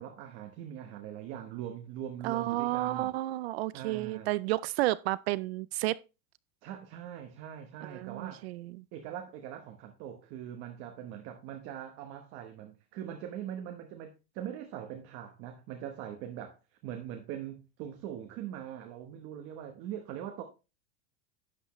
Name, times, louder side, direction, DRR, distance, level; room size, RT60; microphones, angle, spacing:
voice 1, 0.0-3.1 3.7-4.3 6.6-8.5 8.9-16.6 16.8-20.4, right 10 dB, 30° right, 1.0 m, -42 dB
voice 2, 2.2-6.0 7.9-8.8, right 17 dB, 55° right, 0.4 m, -31 dB
11.5 x 8.1 x 3.0 m
supercardioid pair, 175°, 39 cm